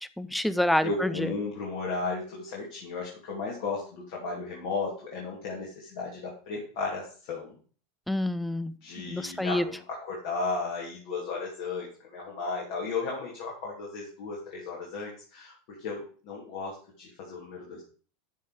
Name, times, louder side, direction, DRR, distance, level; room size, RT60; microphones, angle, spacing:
voice 1, 0.2-1.1 8.1-9.6, left 1 dB, 5° left, 14 dB, 0.6 m, -28 dB
voice 2, 0.8-7.6 8.8-17.8, left 4 dB, 60° left, -2 dB, 2.6 m, -35 dB
12.0 x 4.1 x 4.9 m, 0.42 s
hypercardioid pair, 85°, 0 cm